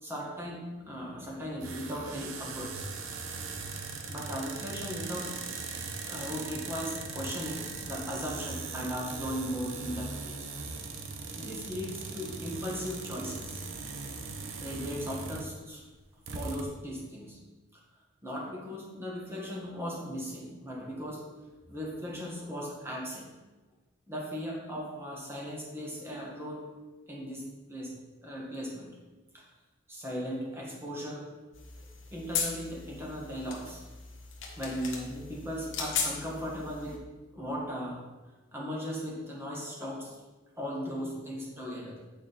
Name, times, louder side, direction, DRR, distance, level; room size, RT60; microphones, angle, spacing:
voice 1, 0.0-2.9 4.1-5.7 6.0-10.5 11.3-13.6 14.6-15.8 16.3-17.4 17.7-17.8 18.2-21.3 21.7-23.3 24.1-26.6 27.1-27.9 28.2-28.9 29.3-29.4 29.9-31.2 31.8-31.9 32.1-33.8 34.6-37.0 37.3-38.0 38.5-40.2 40.6-42.1, equal, 10° right, -3 dB, 1.7 m, -37 dB
sound 1, 1.6-15.6 15.9-16.0 16.3-16.6, right 4 dB, 65° right, 0.8 m, -39 dB
sound 2, 31.5-37.0, left 5 dB, 60° left, 1.4 m, -37 dB
8.8 x 4.9 x 4.2 m, 1.2 s
head